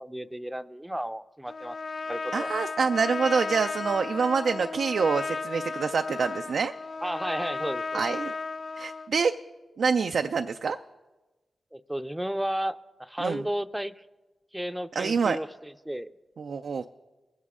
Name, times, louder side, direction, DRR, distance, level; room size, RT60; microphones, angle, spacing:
voice 1, 0.0-1.8 2.1-2.5 7.0-8.0 11.7-14.0 14.5-16.1, right 1 dB, 10° right, 12 dB, 0.5 m, -33 dB
Trumpet, 1.5-9.1, left 4 dB, 60° left, 0.3 m, -34 dB
voice 2, 2.3-6.7 7.9-8.3 8.8-9.3 9.8-10.8 13.2-13.4 15.0-15.4 16.4-16.9, right 5 dB, 75° right, 7 dB, 0.3 m, -26 dB
20.0 x 8.2 x 3.7 m, 1.1 s
cardioid pair, 45°, 0 cm